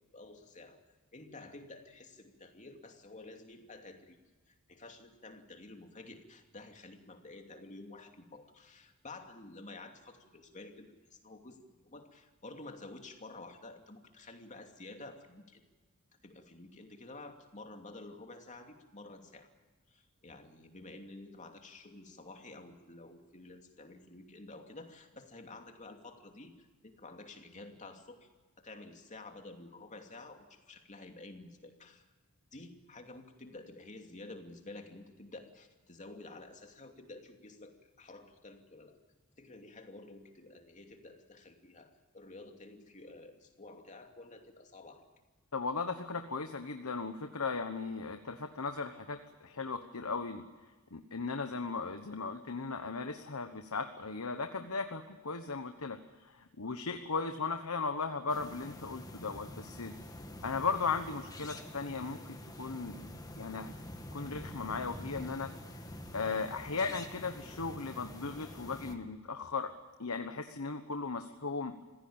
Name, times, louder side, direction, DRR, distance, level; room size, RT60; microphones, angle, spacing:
voice 1, 0.1-0.8 1.1-4.2 4.5-15.6 16.2-19.5 19.9-28.3 28.6-32.1 32.5-39.0 39.4-45.1 66.7-67.0, left 2 dB, 35° left, 4 dB, 2.8 m, -51 dB
voice 2, 45.5-50.4 50.9-59.9 60.4-63.1 63.4-63.7 64.1-65.5 66.1-69.7 70.0-71.8, left 4 dB, 85° left, 7 dB, 1.2 m, -37 dB
sound 1, 58.3-69.0, left 1 dB, 20° left, 1.9 m, -47 dB
26.0 x 16.5 x 8.9 m, 1.3 s
head